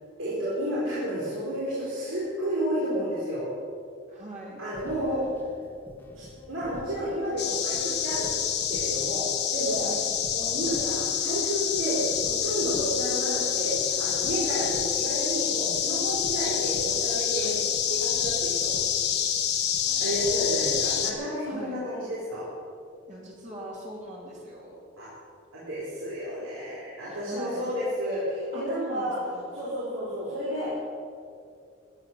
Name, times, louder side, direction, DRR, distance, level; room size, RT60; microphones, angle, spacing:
voice 1, 0.2-3.5 4.6-5.3 6.1-8.3 8.7-9.9 10.3-17.5 17.9-18.8 19.9-22.5 25.0-25.1 25.5-29.2 29.5-30.8, equal, 75° right, -9 dB, 4.3 m, -31 dB
voice 2, 4.1-4.6 9.8-10.1 17.4-17.6 21.4-21.8 23.1-24.8 27.0-27.7 28.5-29.5, right 1 dB, 35° right, -4 dB, 2.9 m, -42 dB
sound 1, 4.6-20.8, left 1 dB, 10° left, 1.5 m, -48 dB
sound 2, 7.4-21.1, left 9 dB, 50° left, 1.3 m, -27 dB
15.0 x 10.5 x 6.5 m, 2.4 s
head